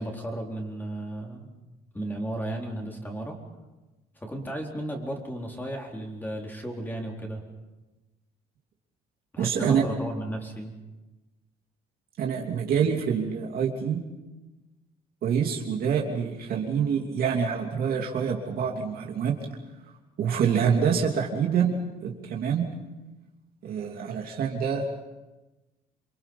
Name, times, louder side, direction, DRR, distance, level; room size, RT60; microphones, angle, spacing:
voice 1, 0.0-1.5 1.9-3.4 4.2-7.4 9.3-10.7, right 1 dB, 10° left, 0 dB, 4.2 m, -34 dB
voice 2, 9.4-9.8 12.2-14.0 15.2-19.3 20.2-22.7 23.6-25.0, right 7 dB, 60° right, 0 dB, 3.0 m, -26 dB
28.5 x 23.0 x 5.5 m, 1.1 s
cardioid pair, 110°, 17 cm